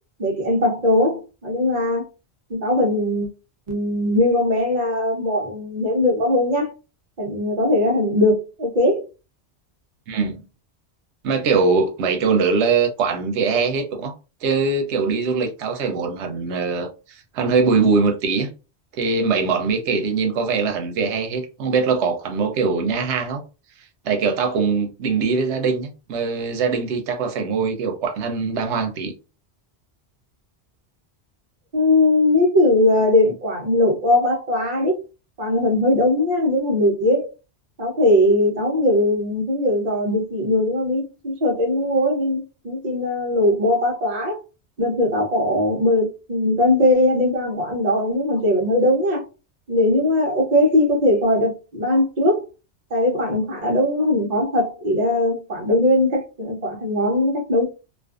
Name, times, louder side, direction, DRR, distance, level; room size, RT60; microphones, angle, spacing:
voice 1, 0.2-2.1 2.5-3.3 3.7-6.7 7.2-9.1 31.7-35.0 35.4-37.3 37.8-44.4 44.8-49.2 49.7-52.5 52.9-57.6, left 1 dB, 45° right, 0.7 m, -20 dB
voice 2, 10.1-10.4 11.2-14.1 14.4-18.5 19.0-23.4 24.0-29.1, right 4 dB, 85° right, 0.9 m, -22 dB
2.4 x 2.3 x 2.4 m
omnidirectional pair, 1.1 m